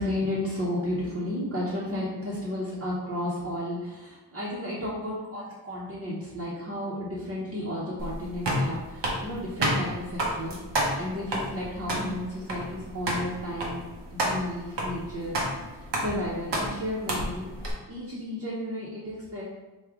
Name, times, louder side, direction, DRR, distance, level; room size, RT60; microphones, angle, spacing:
voice 1, 0.0-10.6 11.0-13.8 14.1-15.4 15.8-19.4, left 1 dB, 35° right, -7 dB, 0.9 m, -33 dB
sound 1, 8.0-17.7, right 1 dB, 85° right, 0.9 m, -31 dB
4.7 x 2.3 x 3.6 m, 1.1 s
wide cardioid pair, 130°, 41 cm